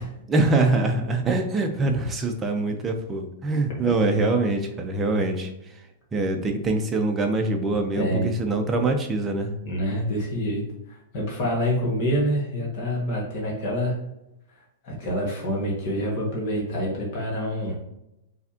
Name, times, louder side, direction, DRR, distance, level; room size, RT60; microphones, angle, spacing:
voice 1, 0.3-5.5 6.1-9.6, right 2 dB, 15° right, 4 dB, 0.6 m, -24 dB
voice 2, 8.0-8.3 9.6-10.6 10.9-14.0 14.8-17.8, equal, 45° left, -3 dB, 1.6 m, -26 dB
4.6 x 3.4 x 2.8 m, 0.88 s
hypercardioid pair, 150°, 0 cm